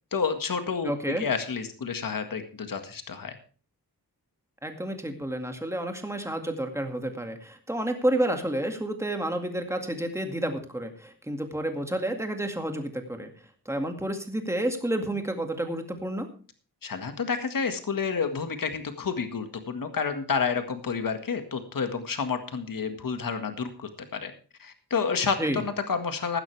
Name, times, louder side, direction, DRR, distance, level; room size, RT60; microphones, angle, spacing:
voice 1, 0.1-3.4 16.8-24.3 24.6-26.4, left 5 dB, 60° left, 7 dB, 1.8 m, -30 dB
voice 2, 0.8-1.3 4.6-13.3 13.7-16.3 25.4-25.6, right 1 dB, 5° right, 5 dB, 2.1 m, -30 dB
16.0 x 12.0 x 3.4 m, 0.38 s
wide cardioid pair, 145°, 39 cm